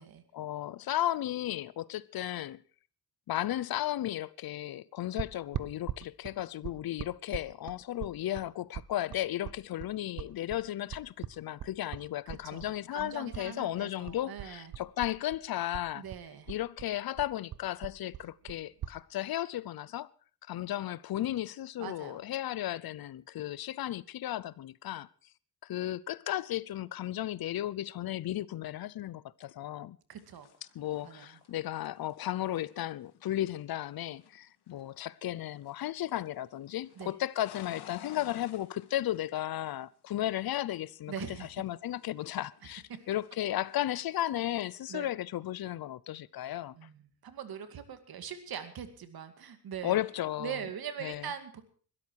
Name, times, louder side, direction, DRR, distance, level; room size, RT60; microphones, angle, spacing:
voice 1, 0.3-2.6 3.3-16.0 16.5-20.1 20.5-25.1 25.6-30.0 30.7-46.8 49.8-50.6 51.0-51.3, left 13 dB, 65° left, 0.7 m, -35 dB
sound 1, 5.2-13.5 13.7-15.4 15.7-19.0, right 10 dB, 50° right, 0.7 m, -41 dB
voice 2, 12.3-14.7 15.9-16.5 21.8-22.2 30.1-30.5 31.0-31.4 37.0-37.2 41.1-41.5 42.9-43.0 44.9-45.1 46.7-50.0 50.4-51.6, right 8 dB, 65° right, 2.3 m, -42 dB
sound 2, 30.2-35.1 35.4-36.4 36.6-40.1 40.4-42.8 43.1-44.8, left 10 dB, 90° left, 1.8 m, -55 dB
21.5 x 13.0 x 4.7 m
cardioid pair, 135°, 39 cm